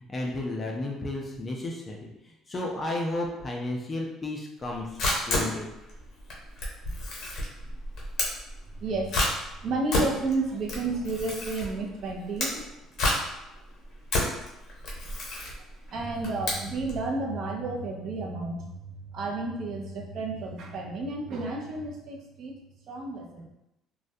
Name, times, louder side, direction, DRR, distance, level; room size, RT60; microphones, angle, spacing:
voice 1, 0.1-5.0 5.3-5.7, left 2 dB, 25° left, -1 dB, 0.4 m, -33 dB
Camera, 4.6-17.0, left 1 dB, 60° left, 0.8 m, -31 dB
voice 2, 8.8-9.2 9.6-12.5 15.9-22.5 22.9-23.5, right 2 dB, 55° right, 1 dB, 0.5 m, -31 dB
2.3 x 2.1 x 2.6 m, 0.91 s
cardioid pair, 110°, 0 cm